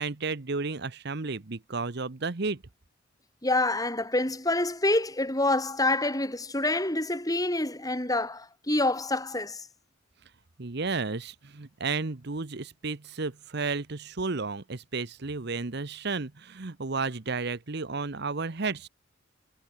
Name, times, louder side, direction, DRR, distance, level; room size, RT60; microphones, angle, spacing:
voice 1, 0.0-2.6 10.6-18.9, right 4 dB, 55° right, 1.0 m, -32 dB
voice 2, 3.4-9.7, left 2 dB, 20° left, 3.9 m, -27 dB
head